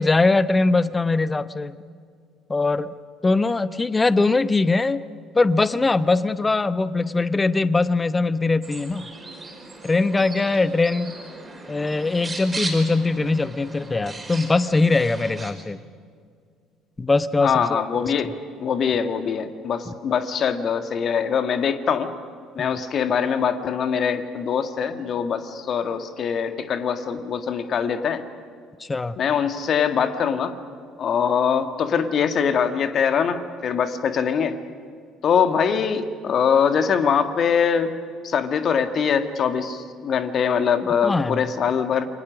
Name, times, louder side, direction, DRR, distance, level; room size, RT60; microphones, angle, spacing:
voice 1, 0.0-1.8 2.5-2.9 3.2-5.0 5.3-9.1 9.8-11.2 11.7-15.8 17.0-18.1 19.9-20.0 22.6-22.8 28.8-29.2 41.0-41.5, left 3 dB, 20° left, 15 dB, 0.9 m, -21 dB
sound 1, 8.6-15.5, right 2 dB, 20° right, 5.2 m, -37 dB
voice 2, 17.4-18.3 18.6-22.1 22.5-28.2 29.2-30.6 31.0-34.6 35.2-37.9 38.2-42.1, left 7 dB, 45° left, 8 dB, 1.8 m, -23 dB
28.0 x 24.5 x 6.3 m, 2.1 s
figure-of-eight pair, 55°, 0 cm